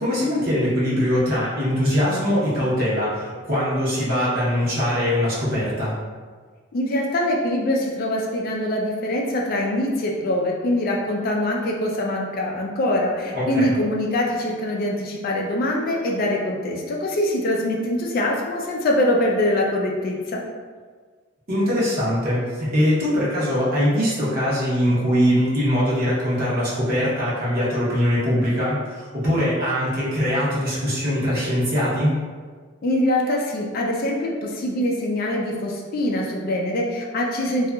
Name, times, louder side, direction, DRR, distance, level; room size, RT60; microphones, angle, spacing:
voice 1, 0.0-5.9 13.3-13.7 21.5-32.1, equal, 50° right, -8 dB, 0.8 m, -22 dB
voice 2, 6.7-20.4 32.8-37.7, left 1 dB, 50° left, -1 dB, 0.3 m, -23 dB
2.7 x 2.3 x 2.3 m, 1.5 s
head